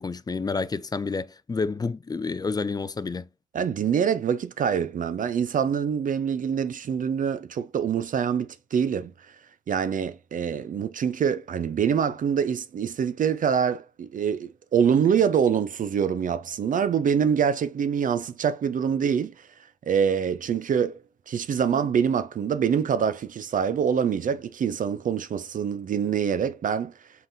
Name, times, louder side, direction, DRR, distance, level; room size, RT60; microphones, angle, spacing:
voice 1, 0.0-3.3, left 4 dB, 25° left, 0.4 m, -29 dB
voice 2, 3.5-9.1 9.7-19.3 19.9-21.0 21.3-26.9, right 7 dB, 55° right, 0.5 m, -25 dB
3.8 x 3.8 x 2.6 m
supercardioid pair, 45°, 17 cm